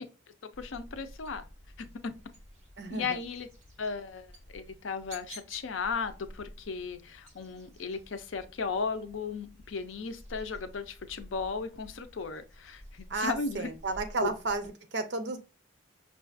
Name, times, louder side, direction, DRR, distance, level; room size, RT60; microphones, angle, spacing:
voice 1, 0.4-1.4 1.8-2.1 2.9-3.5 3.8-13.7 14.2-14.3, left 5 dB, 90° left, 0.5 m, -36 dB
sound 1, 0.5-14.7, equal, 35° right, 1.3 m, -52 dB
voice 2, 2.8-3.2 13.1-15.4, right 3 dB, 65° right, 0.6 m, -32 dB
5.5 x 2.4 x 2.5 m
head